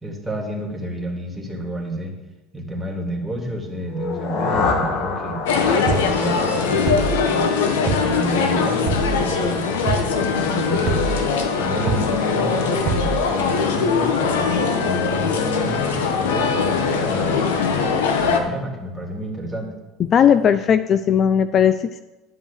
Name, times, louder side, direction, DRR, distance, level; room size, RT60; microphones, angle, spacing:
voice 1, 0.0-2.1 2.5-7.4 7.8-11.1 11.6-19.7, right 1 dB, 5° right, -1 dB, 2.6 m, -30 dB
sound 1, 3.9-7.8, left 4 dB, 60° left, 1.7 m, -27 dB
sound 2, 5.5-18.4, left 5 dB, 90° left, 1.3 m, -21 dB
sound 3, 5.9-6.1 6.9-7.2 7.9-8.1 8.9-9.2 9.9-10.1 10.9-11.2 11.9-12.1 12.9-13.2, right 4 dB, 55° right, 1.2 m, -24 dB
voice 2, 20.0-22.0, left 8 dB, 40° left, 13 dB, 0.4 m, -17 dB
10.5 x 5.3 x 7.4 m, 1.1 s
supercardioid pair, 105°, 0 cm